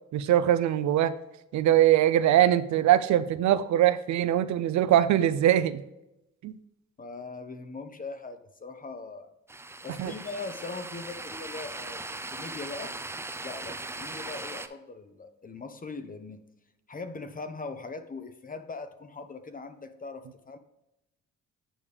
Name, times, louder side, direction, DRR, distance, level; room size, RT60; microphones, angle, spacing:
voice 1, 0.1-1.1 1.5-5.8 6.4-6.6 10.0-10.1, right 12 dB, 70° right, 13 dB, 0.5 m, -22 dB
voice 2, 7.0-9.3 9.8-13.0 13.4-16.4 16.9-20.6, left 3 dB, 30° left, 9 dB, 0.8 m, -40 dB
sound 1, 9.5-14.7, right 2 dB, 10° right, 0.5 m, -39 dB
8.6 x 5.3 x 3.4 m, 0.87 s
cardioid pair, 90°, 30 cm